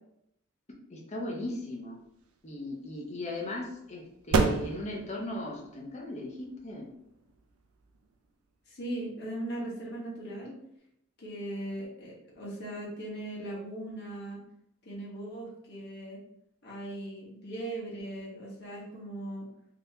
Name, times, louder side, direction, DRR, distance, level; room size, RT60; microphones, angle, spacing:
voice 1, 0.9-2.0 2.4-6.9, left 1 dB, 30° left, -1 dB, 0.7 m, -37 dB
sound 1, 1.7-9.0, right 3 dB, 90° right, 0.5 m, -34 dB
voice 2, 8.7-10.6 11.2-14.4 14.8-16.2 16.6-19.5, right 1 dB, 50° left, -5 dB, 1.2 m, -39 dB
3.5 x 2.8 x 2.8 m, 0.77 s
head